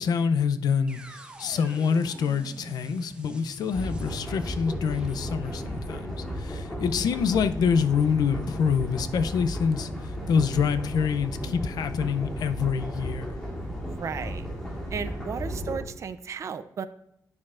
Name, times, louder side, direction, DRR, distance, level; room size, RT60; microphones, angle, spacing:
voice 1, 0.0-13.3, left 6 dB, 85° left, 0.5 m, -26 dB
sound 1, 0.9-8.8, right 1 dB, 15° right, 0.7 m, -45 dB
sound 2, 3.7-15.8, equal, 10° left, 2.0 m, -34 dB
voice 2, 13.9-14.5 14.9-16.8, right 6 dB, 50° right, 0.4 m, -34 dB
9.5 x 6.4 x 2.4 m
wide cardioid pair, 145°, 7 cm